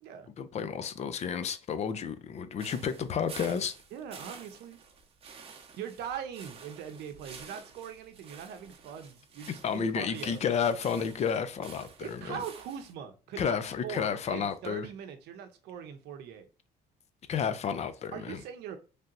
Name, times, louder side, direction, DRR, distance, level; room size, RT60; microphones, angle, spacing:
voice 1, 0.4-3.7 9.6-12.4 13.4-14.9 17.3-18.4, left 7 dB, 40° left, 0.4 m, -31 dB
sound 1, 2.6-12.9, right 5 dB, 35° right, 0.7 m, -50 dB
voice 2, 3.9-4.8 5.8-10.4 12.0-16.5 18.1-18.8, right 8 dB, 80° right, 0.6 m, -41 dB
3.3 x 2.8 x 2.4 m
cardioid pair, 110°, 17 cm